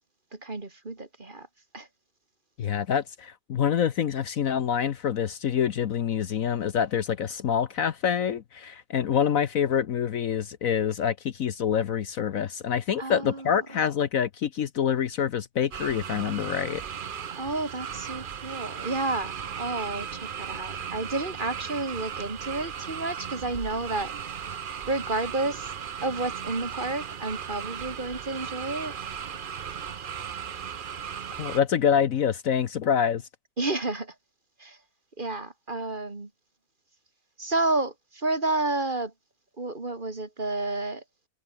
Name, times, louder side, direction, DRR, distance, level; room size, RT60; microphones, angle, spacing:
voice 1, 0.3-1.5 1.7-1.9 13.0-13.6 17.4-24.1 24.9-25.7 26.0-29.0 33.6-34.1 34.6-34.8 35.2-36.3 37.4-39.1 39.6-41.0, right 2 dB, 30° right, 2.5 m, -31 dB
voice 2, 2.6-16.8 31.4-33.2, left 8 dB, 60° left, 1.2 m, -26 dB
sound 1, 15.7-31.6, right 8 dB, 50° right, 0.7 m, -36 dB
omnidirectional pair, 1.7 m